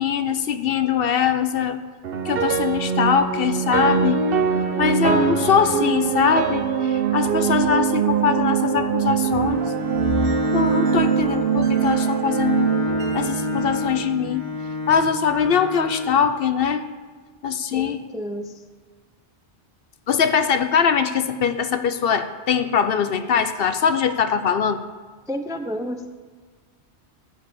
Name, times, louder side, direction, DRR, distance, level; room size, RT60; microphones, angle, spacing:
voice 1, 0.0-1.8 2.2-4.2 4.8-9.6 10.1-12.7 13.1-14.5 14.9-16.9 17.4-18.0 20.1-24.8, left 7 dB, 60° left, 10 dB, 0.8 m, -22 dB
sound 1, 2.0-14.3, right 7 dB, 60° right, 1.0 m, -23 dB
Bowed string instrument, 9.2-16.3, left 2 dB, 45° left, 2.4 m, -29 dB
voice 2, 17.7-18.6 25.3-26.1, equal, 5° right, 6 dB, 0.4 m, -31 dB
12.0 x 4.8 x 8.5 m, 1.5 s
omnidirectional pair, 1.1 m